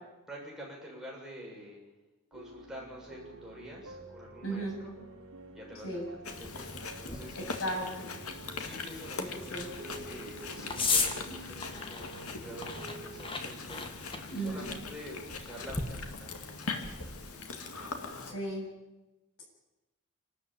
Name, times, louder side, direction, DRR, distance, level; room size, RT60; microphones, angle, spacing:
voice 1, 0.3-1.8 2.3-4.9 5.5-6.0 6.4-7.4 8.6-13.8 14.3-18.5, equal, 5° right, -4 dB, 7.2 m, -48 dB
sound 1, 2.3-13.4, right 2 dB, 70° right, 4.0 m, -50 dB
voice 2, 4.4-4.8 5.8-6.0 7.4-8.1 9.2-9.7 14.3-14.7 18.3-18.7, right 1 dB, 65° left, 1 dB, 7.8 m, -36 dB
Chewing mastication, 6.2-18.3, left 4 dB, 80° left, 2.3 m, -41 dB
sound 2, 6.3-17.2, left 4 dB, 25° left, 1.9 m, -38 dB
27.0 x 13.0 x 8.9 m, 1.1 s
head